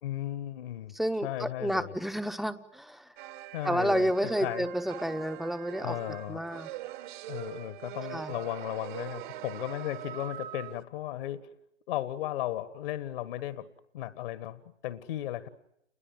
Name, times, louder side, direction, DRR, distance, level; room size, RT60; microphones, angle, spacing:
voice 1, 0.0-0.9 1.2-1.9 3.5-4.1 4.4-4.6 5.8-6.4 7.3-11.4 11.9-13.7 13.9-15.5, left 13 dB, 50° left, 12 dB, 1.7 m, -35 dB
voice 2, 0.9-3.1 3.6-6.0 6.3-6.7 8.1-8.3, equal, ahead, 8 dB, 1.0 m, -30 dB
sound 1, 3.2-10.8, right 14 dB, 40° right, 1.3 m, -42 dB
30.0 x 22.0 x 7.7 m, 0.80 s
figure-of-eight pair, 120°, 36 cm